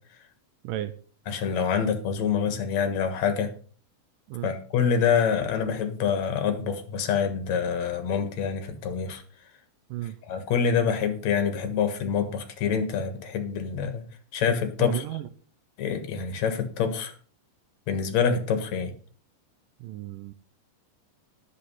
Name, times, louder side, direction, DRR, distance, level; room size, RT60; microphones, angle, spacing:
voice 1, 1.3-3.5 4.4-9.2 10.3-14.0 14.3-15.0 15.8-17.1 17.9-18.9, left 7 dB, 60° left, 7 dB, 2.6 m, -26 dB
voice 2, 14.8-15.3 19.8-20.3, right 13 dB, 80° right, 11 dB, 2.3 m, -33 dB
10.5 x 8.3 x 5.6 m, 0.42 s
omnidirectional pair, 3.9 m